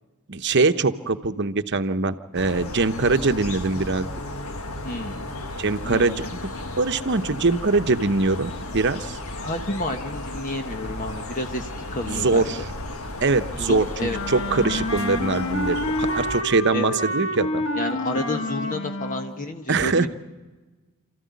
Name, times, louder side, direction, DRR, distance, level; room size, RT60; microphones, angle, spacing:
voice 1, 0.3-4.1 5.6-6.1 6.8-9.2 12.0-12.6 13.2-17.6 19.7-20.1, right 3 dB, 55° right, 9 dB, 0.9 m, -22 dB
sound 1, 2.3-16.4, left 1 dB, 75° left, 1.7 m, -34 dB
voice 2, 4.8-5.2 5.8-6.1 9.4-12.5 13.6-14.2 16.7-17.0 17.7-20.1, left 1 dB, 35° left, 5 dB, 1.2 m, -30 dB
Wind instrument woodwind instrument, 14.1-19.3, left 1 dB, 60° left, 1.8 m, -28 dB
28.5 x 14.5 x 9.5 m, 1.3 s
head